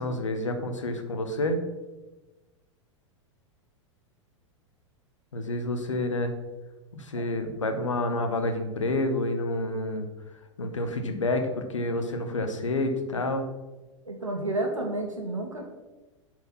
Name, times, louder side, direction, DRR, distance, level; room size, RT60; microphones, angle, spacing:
voice 1, 0.0-1.6 5.3-6.3 6.9-10.1 10.6-13.5, left 2 dB, 75° left, 7 dB, 1.1 m, -29 dB
voice 2, 14.1-15.7, right 2 dB, 85° right, 1 dB, 1.7 m, -31 dB
7.8 x 4.6 x 5.5 m, 1.1 s
figure-of-eight pair, 90°, 16 cm